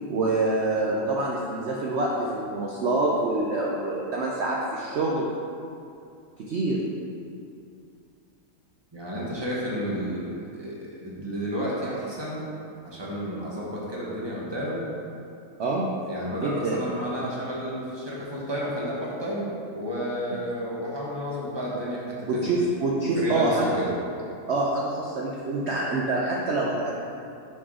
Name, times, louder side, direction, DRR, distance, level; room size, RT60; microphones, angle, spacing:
voice 1, 0.1-5.3 6.5-6.8 15.6-15.9 16.4-16.8 22.3-23.8 24.5-27.0, right 2 dB, 70° right, -3 dB, 0.6 m, -26 dB
voice 2, 8.9-12.4 12.8-14.8 16.1-22.4 23.2-23.9, equal, 20° right, -6 dB, 0.9 m, -31 dB
5.5 x 5.1 x 3.7 m, 2.5 s
omnidirectional pair, 1.8 m